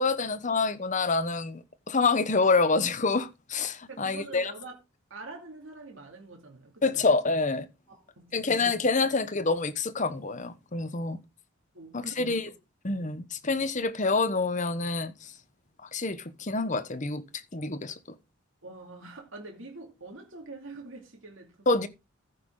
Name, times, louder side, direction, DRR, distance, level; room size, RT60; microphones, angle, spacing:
voice 1, 0.0-4.5 6.8-7.7 8.3-11.2 11.9-12.5 12.8-15.3 15.9-17.2 17.5-17.9 21.7-21.9, left 3 dB, 35° left, 1.0 m, -27 dB
voice 2, 3.9-4.8 5.1-7.0 7.9-8.5 11.7-12.4 18.6-21.7, right 3 dB, 70° right, 2.6 m, -45 dB
14.5 x 6.0 x 3.8 m
head